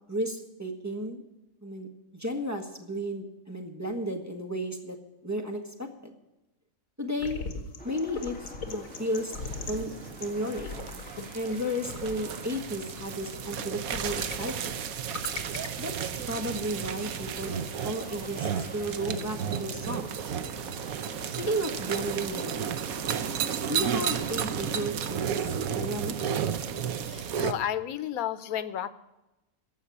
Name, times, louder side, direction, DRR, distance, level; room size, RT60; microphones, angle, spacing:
voice 1, 0.1-1.2 1.6-1.9 2.1-5.0 5.2-6.1 7.0-7.4 7.8-9.4 9.7-9.9 10.2-10.7 11.3-14.8 15.8-15.9 16.3-20.2 21.4-22.6 23.6-26.1, equal, 10° right, 0 dB, 1.4 m, -33 dB
sound 1, 7.2-16.3, left 4 dB, 70° left, 1.7 m, -41 dB
sound 2, 7.8-24.7, left 1 dB, 5° left, 2.0 m, -48 dB
sound 3, 8.7-27.5, right 8 dB, 80° right, 1.2 m, -33 dB
voice 2, 27.0-28.9, left 10 dB, 90° left, 14 dB, 1.2 m, -32 dB
15.0 x 5.6 x 9.6 m, 0.97 s
omnidirectional pair, 1.5 m